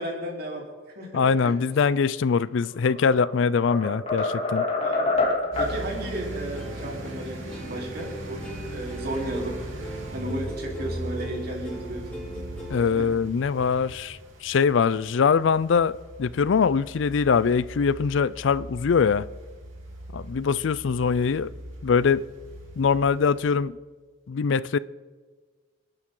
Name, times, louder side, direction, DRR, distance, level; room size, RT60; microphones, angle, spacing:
voice 1, 0.0-1.6 4.8-5.2 5.6-8.4 8.7-9.5 10.1-12.2 13.0-13.1, right 1 dB, 50° right, 3.8 m, -34 dB
voice 2, 1.1-4.6 12.7-19.3 20.1-21.5 21.8-22.3 22.8-23.8 24.3-24.8, left 5 dB, 65° left, 0.4 m, -23 dB
sound 1, 2.8-3.3 3.7-5.8, left 3 dB, 30° left, 2.6 m, -26 dB
sound 2, 5.5-23.5, equal, 75° right, 3.3 m, -39 dB
Plucked string instrument, 5.6-13.0, right 1 dB, 5° left, 5.4 m, -41 dB
26.5 x 11.0 x 3.8 m
head